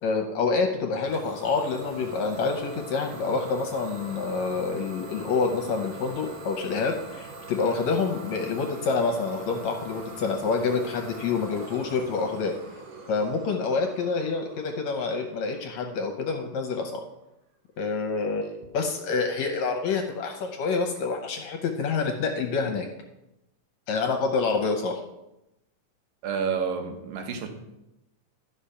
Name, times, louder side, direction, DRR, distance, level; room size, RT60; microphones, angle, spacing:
voice 1, 0.0-12.5 13.1-17.1 17.8-22.9 23.9-25.0, left 4 dB, 70° left, 3 dB, 1.8 m, -27 dB
Idling / Domestic sounds home sounds, 0.9-16.5, right 2 dB, 75° right, 2.7 m, -42 dB
voice 2, 26.2-27.5, right 6 dB, 90° right, 5 dB, 2.8 m, -29 dB
12.0 x 5.1 x 5.7 m, 0.92 s
omnidirectional pair, 3.9 m